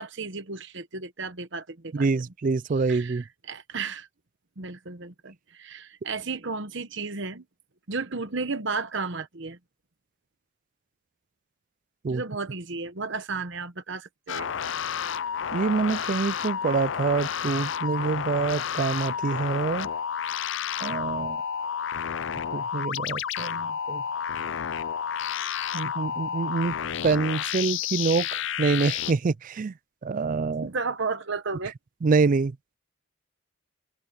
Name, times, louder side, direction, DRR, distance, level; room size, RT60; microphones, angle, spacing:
voice 1, 0.0-2.1 2.8-4.1 4.6-7.4 7.9-9.6 12.1-14.6 30.6-31.7, right 4 dB, 55° right, 1.1 m, -33 dB
voice 2, 1.9-3.2 12.0-12.2 15.5-19.9 20.8-21.4 22.5-24.0 25.7-26.8 27.0-29.7 30.0-30.7 32.0-32.6, right 4 dB, 40° right, 0.3 m, -26 dB
sound 1, 14.3-29.1, left 8 dB, 60° left, 0.5 m, -31 dB
head